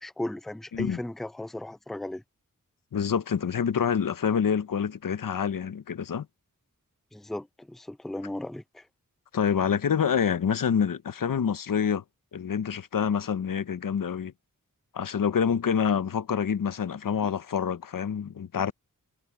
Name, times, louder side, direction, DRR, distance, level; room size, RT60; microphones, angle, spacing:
voice 1, 0.0-2.2 7.1-8.9, left 1 dB, ahead, 0.5 m, -36 dB
voice 2, 2.9-6.3 9.3-12.0 12.3-14.3 14.9-18.7, left 7 dB, 90° left, 0.9 m, -27 dB
wide cardioid pair, 100°, 32 cm